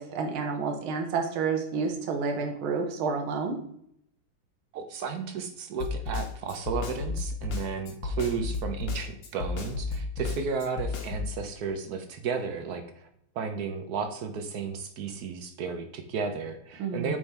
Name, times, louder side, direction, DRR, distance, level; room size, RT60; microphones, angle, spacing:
voice 1, 0.0-3.6 16.8-17.2, right 5 dB, 80° right, 3 dB, 1.7 m, -30 dB
voice 2, 4.7-13.1 13.4-17.2, right 5 dB, 65° right, 7 dB, 0.9 m, -33 dB
Snare drum, 5.8-11.3, left 3 dB, 70° left, 1.5 m, -32 dB
7.8 x 3.7 x 4.2 m, 0.71 s
omnidirectional pair, 2.2 m